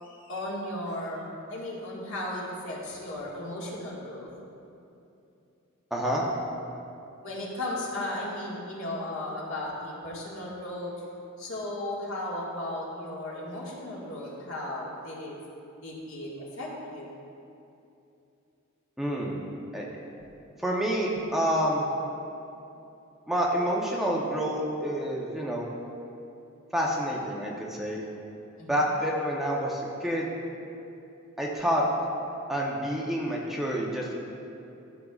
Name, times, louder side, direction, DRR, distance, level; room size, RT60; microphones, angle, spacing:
voice 1, 0.0-4.3 7.2-10.9 11.4-15.4 15.8-17.1 28.6-28.8, left 1 dB, 75° left, -5 dB, 1.8 m, -35 dB
voice 2, 5.9-6.3 19.0-19.4 19.7-19.8 20.6-21.9 23.3-25.7 26.7-28.0 28.7-30.4 31.4-31.8 32.5-34.1, equal, ahead, -4 dB, 0.8 m, -28 dB
13.5 x 6.5 x 2.4 m, 2.7 s
head